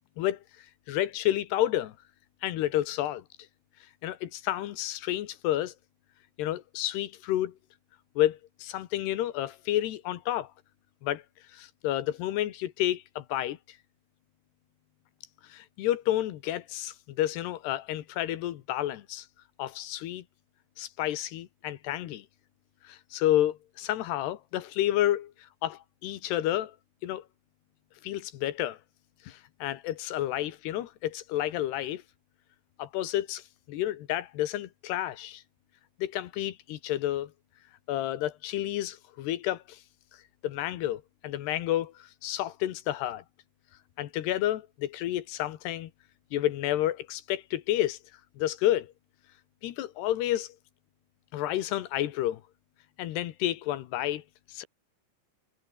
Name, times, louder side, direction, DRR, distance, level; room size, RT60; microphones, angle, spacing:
voice 1, 0.9-1.9 2.4-3.2 4.0-5.7 6.4-7.5 8.2-10.5 11.0-11.2 11.5-13.6 15.5-19.3 19.6-20.2 20.8-22.2 22.8-25.3 25.6-26.7 27.0-27.2 28.0-28.8 29.3-32.0 32.8-33.4 33.7-35.4 36.0-37.3 37.9-39.8 40.4-43.2 44.0-45.9 46.3-48.0 48.4-48.9 49.6-50.5 51.3-52.4 53.0-54.2 54.5-54.6, left 13 dB, 70° left, 3.1 m, -30 dB
omnidirectional pair, 5.6 m